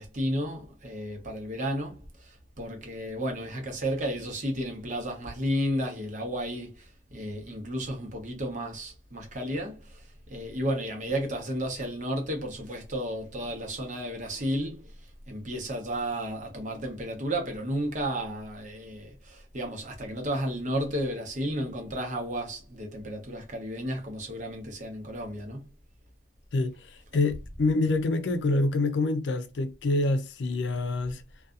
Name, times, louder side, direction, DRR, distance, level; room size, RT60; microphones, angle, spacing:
voice 1, 0.0-14.9 15.3-25.7, equal, 45° right, 0.9 m, -33 dB
voice 2, 26.5-31.2, left 2 dB, 80° left, 0.4 m, -26 dB
2.6 x 2.3 x 2.3 m
head